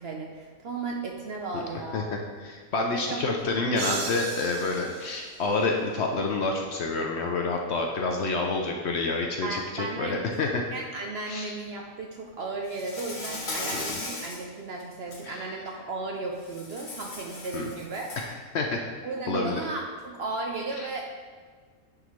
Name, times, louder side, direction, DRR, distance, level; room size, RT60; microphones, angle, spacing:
voice 1, 0.0-2.1 2.9-3.7 9.4-10.1 10.7-18.1 19.0-21.1, right 3 dB, 60° right, 0 dB, 0.7 m, -35 dB
voice 2, 2.4-10.6 11.3-11.5 13.7-14.0 15.3-15.5 17.5-17.7 18.5-18.8 19.3-19.6 20.8-20.9, left 3 dB, 60° left, 1 dB, 0.8 m, -28 dB
sound 1, 3.8-6.4, right 5 dB, 80° right, 1.1 m, -37 dB
Insect, 12.7-14.4 14.9-15.2 16.4-18.3, left 2 dB, 40° left, 1.0 m, -37 dB
9.8 x 3.8 x 3.1 m, 1.5 s
omnidirectional pair, 1.5 m